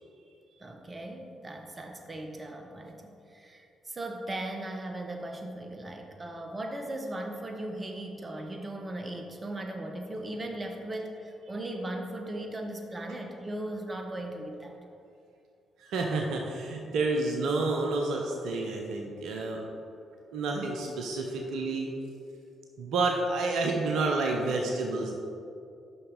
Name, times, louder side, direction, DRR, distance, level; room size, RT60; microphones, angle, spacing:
voice 1, 0.6-14.8, right 1 dB, 30° right, 3 dB, 0.8 m, -38 dB
voice 2, 15.8-19.6 20.3-21.9 22.8-25.2, right 3 dB, 65° right, 1 dB, 0.6 m, -29 dB
6.7 x 5.7 x 3.7 m, 2.6 s
hypercardioid pair, 40°, 0 cm